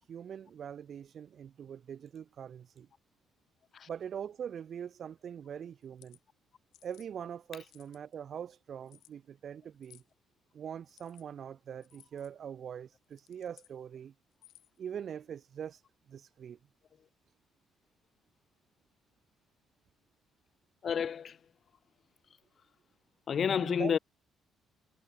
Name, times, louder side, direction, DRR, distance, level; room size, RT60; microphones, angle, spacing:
voice 1, 0.0-2.9 3.9-6.2 6.8-10.0 10.5-14.1 14.8-15.8 16.1-16.6 23.6-23.9, right 8 dB, 50° right, 1.7 m, -43 dB
sound 1, 5.8-6.2 6.7-7.1 7.6-8.1 8.9-9.1 9.8-10.1 10.8-11.2 11.8-12.3 13.0-13.7 14.3-14.8, left 14 dB, 85° left, 7.7 m, -60 dB
voice 2, 20.8-21.4 23.3-24.0, left 7 dB, 45° left, 1.1 m, -30 dB
cardioid pair, 120°, 0 cm